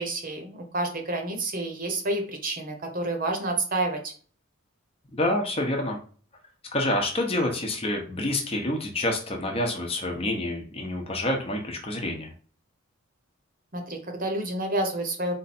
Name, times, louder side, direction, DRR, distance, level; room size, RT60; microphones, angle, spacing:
voice 1, 0.0-4.1 13.7-15.3, right 2 dB, 40° right, 4 dB, 0.9 m, -29 dB
voice 2, 5.1-6.0 6.7-12.3, left 1 dB, 25° left, 2 dB, 0.9 m, -27 dB
4.4 x 2.6 x 4.2 m, 0.42 s
head